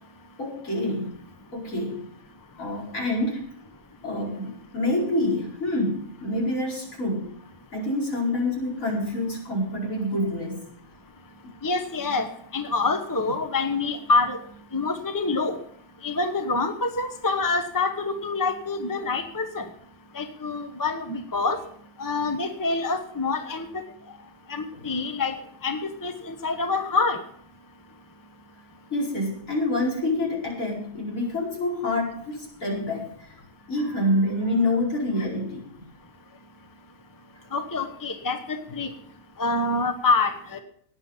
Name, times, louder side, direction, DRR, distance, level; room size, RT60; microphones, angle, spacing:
voice 1, 0.4-1.1 1.5-2.0 2.6-3.4 4.0-7.3 7.7-10.6 24.7-24.9 28.9-33.4 33.7-35.8, left 1 dB, 75° left, -3 dB, 5.3 m, -27 dB
voice 2, 11.6-14.4 14.7-15.6 16.0-19.7 20.1-21.6 22.0-23.7 24.5-27.2 37.5-38.9 39.4-40.6, left 3 dB, 15° left, 7 dB, 1.1 m, -26 dB
17.0 x 10.0 x 5.6 m, 0.64 s
omnidirectional pair, 1.4 m